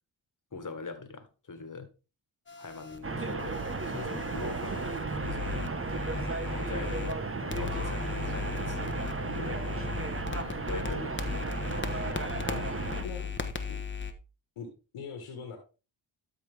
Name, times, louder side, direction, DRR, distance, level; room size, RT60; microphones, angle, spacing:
voice 1, 0.5-1.9 2.6-3.5 3.8-5.7 6.1-9.0 9.3-9.9 10.3-11.4, left 4 dB, 40° left, 1.8 m, -42 dB
sound 1, 2.5-7.2 7.5-14.1, left 6 dB, 25° left, 1.2 m, -38 dB
sound 2, 3.0-13.0, right 3 dB, 25° right, 1.3 m, -34 dB
voice 2, 12.1-12.6 13.0-13.3 13.7-13.8 14.6-14.7 14.9-15.6, left 6 dB, 90° left, 1.8 m, -41 dB
12.5 x 4.9 x 3.5 m
cardioid pair, 60°, 49 cm